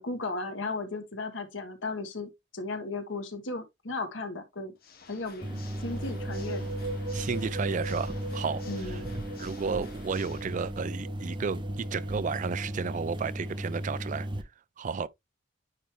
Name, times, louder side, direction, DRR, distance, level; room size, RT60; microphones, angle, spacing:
voice 1, 0.0-4.7 5.1-6.7 8.7-9.2, left 3 dB, 85° left, 1.4 m, -36 dB
Water / Mechanisms, 4.7-10.7, left 5 dB, 55° left, 1.1 m, -51 dB
sound 1, 5.4-14.4, right 1 dB, 25° right, 0.8 m, -36 dB
sound 2, 5.7-13.2, right 2 dB, 75° right, 3.8 m, -42 dB
voice 2, 7.1-8.6 8.9-9.0 9.4-14.3 14.8-15.1, right 5 dB, 40° right, 0.4 m, -32 dB
9.2 x 3.4 x 3.1 m
head